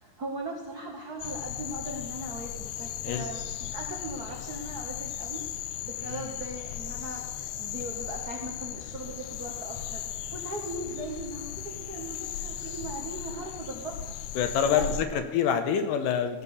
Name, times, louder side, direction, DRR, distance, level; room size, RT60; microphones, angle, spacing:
voice 1, 0.0-14.1 14.7-15.3, right 2 dB, 90° right, 0 dB, 0.8 m, -39 dB
sound 1, 1.2-15.0, left 9 dB, 90° left, 1.7 m, -37 dB
voice 2, 14.4-16.4, left 8 dB, 75° left, 8 dB, 2.3 m, -27 dB
16.0 x 6.5 x 7.1 m, 1.2 s
omnidirectional pair, 4.1 m